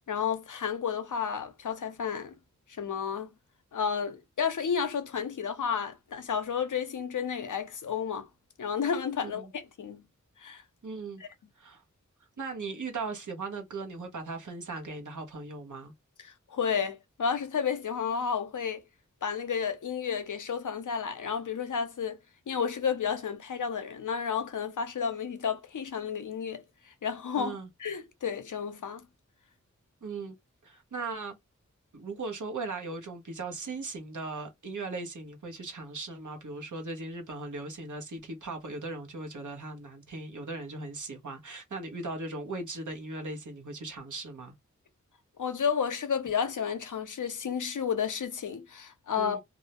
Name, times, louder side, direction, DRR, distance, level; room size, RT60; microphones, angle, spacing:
voice 1, 0.1-2.4 2.7-3.3 3.7-8.3 8.6-10.0 10.4-10.6 11.2-11.3 16.2-18.8 19.2-22.2 22.5-29.1 45.4-49.4, left 7 dB, 80° left, 0.6 m, -32 dB
voice 2, 10.8-11.2 11.6-11.8 12.4-15.9 27.3-27.7 30.0-30.4 30.6-31.3 31.9-44.5 49.1-49.4, right 3 dB, 75° right, 0.8 m, -38 dB
2.5 x 2.0 x 2.9 m
cardioid pair, 40°, 31 cm